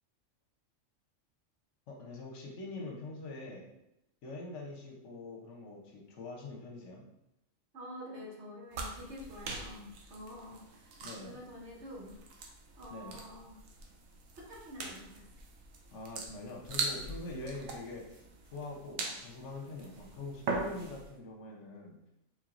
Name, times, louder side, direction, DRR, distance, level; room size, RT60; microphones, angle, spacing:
voice 1, 1.9-3.7 4.2-7.0 11.0-11.4 12.9-13.2 15.9-18.3 18.5-22.0, left 2 dB, 65° left, -1 dB, 1.1 m, -44 dB
voice 2, 7.7-11.0 11.2-12.2 12.8-13.6 14.4-15.5, equal, 60° right, -2 dB, 1.2 m, -47 dB
sound 1, 8.7-21.1, right 3 dB, 90° right, 1.1 m, -42 dB
4.5 x 3.8 x 2.5 m, 0.84 s
omnidirectional pair, 1.3 m